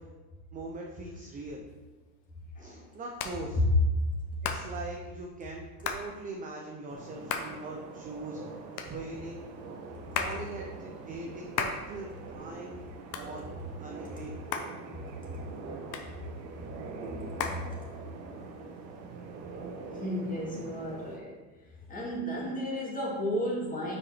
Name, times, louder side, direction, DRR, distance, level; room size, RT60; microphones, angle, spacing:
voice 1, 0.5-1.6 2.6-3.6 4.4-8.5 8.8-9.4 10.1-12.8 13.2-13.4 13.8-14.4, right 2 dB, 20° right, 0 dB, 0.5 m, -41 dB
Hands, 1.7-18.3, left 6 dB, 90° left, 1.0 m, -40 dB
voice 2, 2.6-2.9 10.1-10.2 17.5-17.6 19.9-21.3 21.9-24.0, equal, 15° left, -4 dB, 2.1 m, -34 dB
sound 1, 6.9-21.2, right 4 dB, 90° right, 1.1 m, -44 dB
5.8 x 5.0 x 4.2 m, 1.3 s
supercardioid pair, 120°, 50 cm